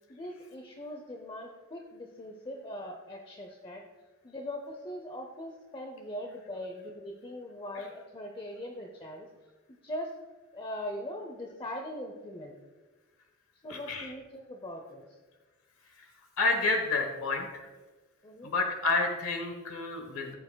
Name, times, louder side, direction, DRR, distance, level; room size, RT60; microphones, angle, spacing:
voice 1, 0.1-3.8 4.2-9.3 9.8-10.1 10.5-12.6 13.6-15.1 18.2-18.5, left 1 dB, 25° left, 3 dB, 0.6 m, -41 dB
voice 2, 13.7-14.1 16.0-16.1 16.4-17.7 18.4-20.3, left 3 dB, 70° left, 4 dB, 1.1 m, -30 dB
14.0 x 7.4 x 2.2 m, 1.3 s
head